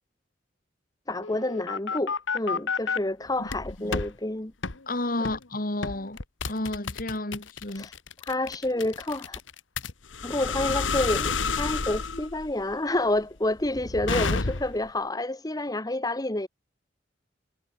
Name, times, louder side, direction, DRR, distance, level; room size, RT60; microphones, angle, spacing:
voice 1, 1.1-4.5 7.8-7.9 8.2-9.4 10.2-16.5, left 1 dB, 20° left, 1.2 m, -29 dB
sound 1, 1.2-3.0 3.5-4.1 4.6-4.8 5.2-5.5 5.8-14.9, left 4 dB, 80° left, 1.6 m, -30 dB
voice 2, 4.9-6.2 6.4-7.9 14.1-14.2, left 2 dB, 45° left, 2.5 m, -31 dB
head